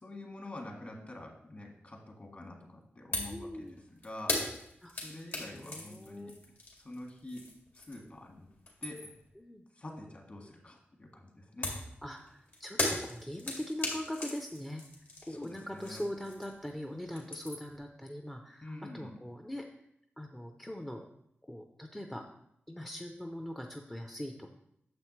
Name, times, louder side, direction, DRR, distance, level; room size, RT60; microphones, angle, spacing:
voice 1, 0.0-3.7 4.0-4.4 5.0-6.4 6.8-7.4 7.7-8.5 8.8-9.1 9.8-11.7 15.3-16.0 18.6-19.1, left 1 dB, 40° left, 1 dB, 1.7 m, -46 dB
sound 1, 3.1-3.4 3.7-8.2 8.5-9.3 11.6-16.7 17.0-17.8, left 2 dB, 60° left, 2.1 m, -38 dB
voice 2, 3.3-3.9 4.8-4.9 5.5-6.4 9.4-9.6 12.0-14.8 15.3-19.7 20.2-21.0 21.5-22.3 22.7-24.6, left 1 dB, 10° left, 3 dB, 0.5 m, -41 dB
9.2 x 7.1 x 3.1 m, 0.75 s
wide cardioid pair, 140°, 4 cm